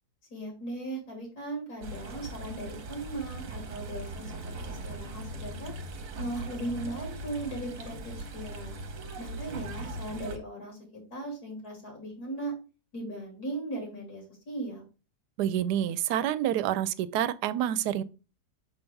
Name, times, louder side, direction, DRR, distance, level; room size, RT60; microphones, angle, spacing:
voice 1, 0.3-4.3 4.6-5.7 6.2-8.8 9.2-10.8 11.1-12.5 12.9-14.8, right 2 dB, 70° left, 3.2 m, -38 dB
sound 1, 1.8-10.4, right 2 dB, 60° right, 1.3 m, -40 dB
voice 2, 15.4-18.0, right 11 dB, 90° right, 1.1 m, -28 dB
5.8 x 5.4 x 3.4 m
omnidirectional pair, 1.7 m